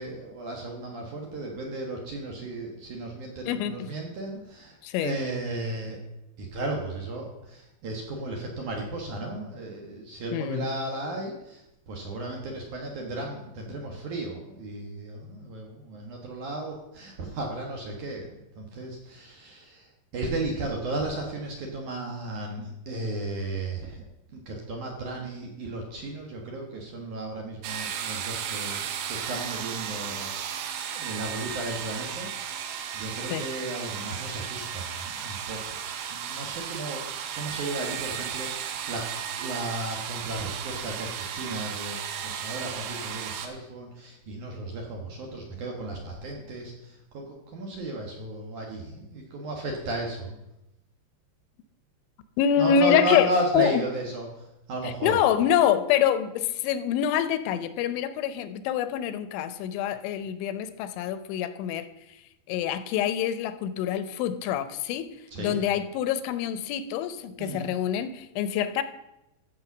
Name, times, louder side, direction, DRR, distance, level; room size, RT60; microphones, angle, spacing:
voice 1, 0.0-6.0 6.4-24.0 24.3-32.3 32.9-35.8 36.1-39.1 39.4-50.4 52.6-55.1 65.3-65.6 67.4-67.8, right 2 dB, 65° right, 1 dB, 2.0 m, -34 dB
voice 2, 3.5-3.9 4.8-5.2 10.3-10.7 33.3-33.4 52.4-53.8 54.8-61.9 62.5-65.1 65.4-68.8, left 9 dB, 90° left, 12 dB, 3.1 m, -26 dB
sound 1, 27.6-43.5, right 8 dB, 85° right, 3.4 m, -34 dB
14.0 x 5.4 x 7.0 m, 0.91 s
omnidirectional pair, 5.2 m